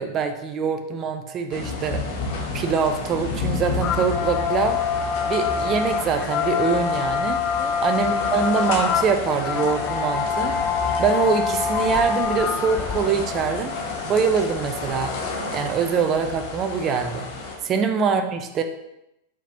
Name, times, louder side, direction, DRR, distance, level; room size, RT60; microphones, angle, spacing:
voice 1, 0.0-2.0 2.5-4.8 5.3-7.4 7.8-10.5 11.0-13.7 14.0-15.1 15.5-17.3 17.6-18.6, right 6 dB, 30° right, 6 dB, 0.5 m, -24 dB
sound 1, 1.5-17.6, left 3 dB, 50° left, 0.9 m, -31 dB
sound 2, 3.8-15.2, left 7 dB, 30° left, 0.3 m, -26 dB
4.6 x 3.6 x 2.9 m, 0.85 s
figure-of-eight pair, 90°, 0 cm